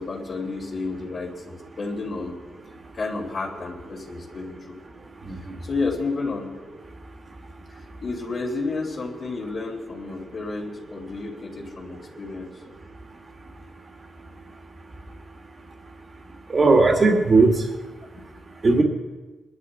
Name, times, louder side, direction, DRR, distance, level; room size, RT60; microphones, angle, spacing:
voice 1, 0.0-2.4 2.9-4.7 5.6-6.5 7.7-12.6, left 3 dB, 45° left, -8 dB, 2.9 m, -31 dB
voice 2, 16.5-17.5 18.6-18.8, right 3 dB, 30° right, 3 dB, 2.0 m, -17 dB
22.5 x 11.5 x 4.3 m, 1.3 s
wide cardioid pair, 150°, 0 cm